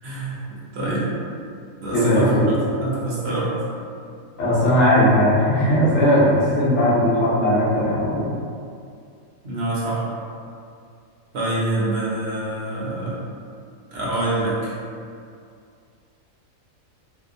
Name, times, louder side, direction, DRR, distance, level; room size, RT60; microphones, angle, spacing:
voice 1, 0.0-1.2 1.8-3.5 9.4-10.1 11.3-13.2 13.9-14.7, right 2 dB, 60° right, -7 dB, 0.7 m, -25 dB
voice 2, 1.9-2.5 4.4-8.3, equal, 70° left, -8 dB, 1.0 m, -18 dB
2.7 x 2.1 x 2.4 m, 2.4 s
omnidirectional pair, 1.5 m